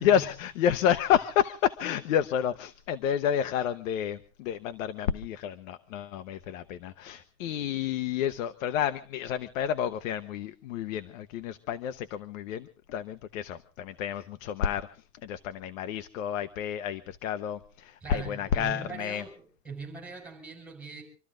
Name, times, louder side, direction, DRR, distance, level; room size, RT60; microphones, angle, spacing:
voice 1, 0.0-19.2, left 9 dB, 90° left, 12 dB, 1.1 m, -30 dB
voice 2, 18.0-21.0, right 4 dB, 5° right, 1 dB, 6.1 m, -41 dB
26.5 x 13.5 x 3.8 m, 0.38 s
supercardioid pair, 165°, 39 cm